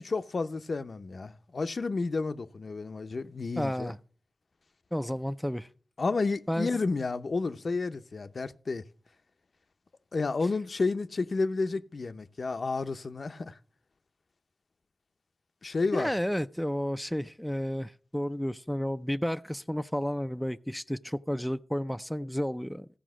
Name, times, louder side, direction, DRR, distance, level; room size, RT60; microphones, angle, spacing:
voice 1, 0.0-3.9 6.0-8.8 10.1-13.6 15.6-16.1, left 3 dB, 65° left, 0.6 m, -31 dB
voice 2, 3.6-4.0 4.9-5.7 6.5-6.7 15.9-22.9, equal, 5° left, 0.4 m, -31 dB
15.0 x 5.0 x 6.1 m
wide cardioid pair, 75°, 0 cm